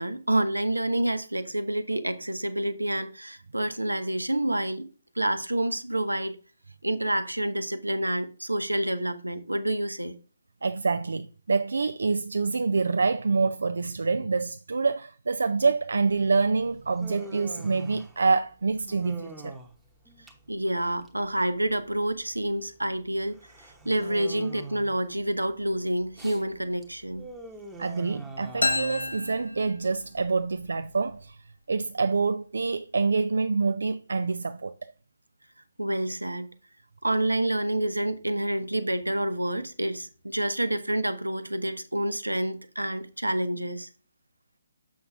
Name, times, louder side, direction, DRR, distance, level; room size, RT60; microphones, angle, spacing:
voice 1, 0.0-4.9 5.1-6.4 6.8-10.1 20.5-27.3 35.8-36.5 37.0-43.9, right 1 dB, 85° right, 0.8 m, -28 dB
voice 2, 10.6-19.6 27.8-31.4 31.7-34.9, right 4 dB, 65° right, 0.4 m, -26 dB
Human voice, 16.1-31.3, right 3 dB, 5° right, 1.0 m, -46 dB
sound 1, 28.6-30.3, left 2 dB, 85° left, 1.2 m, -30 dB
7.4 x 5.9 x 3.5 m
figure-of-eight pair, 140°, 0 cm